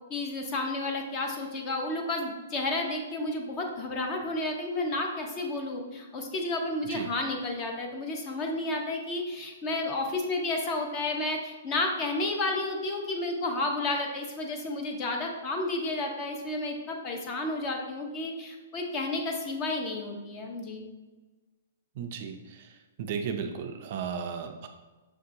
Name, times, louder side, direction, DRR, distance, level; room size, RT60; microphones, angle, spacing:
voice 1, 0.1-20.8, left 2 dB, 25° left, 2 dB, 0.6 m, -31 dB
voice 2, 22.0-22.7 23.0-24.7, right 6 dB, 45° right, 5 dB, 0.4 m, -35 dB
6.1 x 2.7 x 2.6 m, 1.2 s
hypercardioid pair, 155°, 0 cm